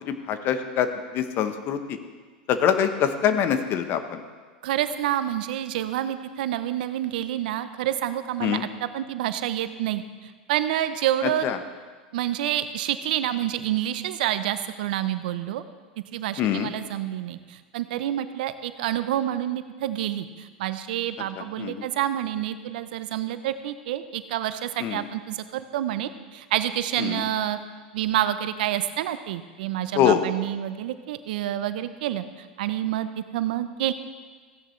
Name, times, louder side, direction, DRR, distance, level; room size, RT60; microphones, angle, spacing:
voice 1, 0.0-2.0 2.5-4.2 8.4-8.6 11.4-11.6 16.4-16.7 21.4-21.9 24.8-25.0 27.0-27.2 29.9-30.2, left 9 dB, 45° left, 9 dB, 1.0 m, -24 dB
voice 2, 4.6-11.5 12.1-15.6 16.1-27.6 27.9-33.9, right 12 dB, 70° right, 12 dB, 0.6 m, -28 dB
15.0 x 10.0 x 3.2 m, 1.5 s
hypercardioid pair, 95°, 5 cm